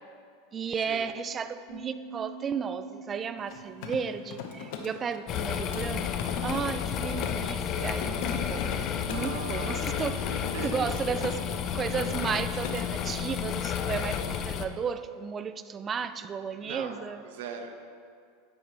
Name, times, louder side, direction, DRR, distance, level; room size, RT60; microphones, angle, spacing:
voice 1, 0.5-6.1 6.4-8.2 8.5-8.7 9.1-10.2 10.6-11.4 11.7-17.2, right 6 dB, 25° right, 12 dB, 0.4 m, -33 dB
sound 1, 1.7-6.8, right 5 dB, 60° right, 2.4 m, -48 dB
Mechanisms, 3.4-7.5 7.9-9.4 10.0-11.4 11.7-12.0 12.3-12.9, left 7 dB, 65° left, 1.0 m, -40 dB
sound 2, 5.3-14.6, left 8 dB, 40° left, 0.6 m, -31 dB
voice 2, 9.0-10.0 10.3-11.2 16.6-17.0 17.2-17.7, right 6 dB, 80° right, 5 dB, 1.0 m, -40 dB
10.0 x 8.3 x 3.4 m, 2.3 s
supercardioid pair, 130°, 0 cm